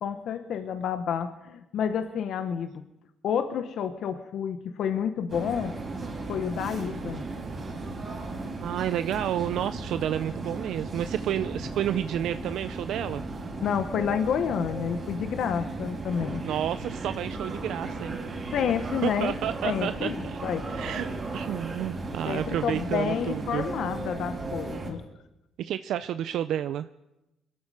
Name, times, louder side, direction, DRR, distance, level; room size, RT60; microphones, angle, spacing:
voice 1, 0.0-2.8 3.2-5.8 6.3-7.2 13.6-16.4 18.5-19.3 19.6-20.7 22.3-25.0, left 7 dB, 70° left, 9 dB, 1.0 m, -29 dB
sound 1, 5.3-24.9, right 3 dB, 35° right, 4.6 m, -36 dB
voice 2, 8.6-13.2 16.4-18.2 19.0-20.4 20.7-23.7 25.6-26.9, right 10 dB, 75° right, 11 dB, 0.5 m, -30 dB
22.5 x 13.0 x 5.0 m, 0.92 s
cardioid pair, 105°, 0 cm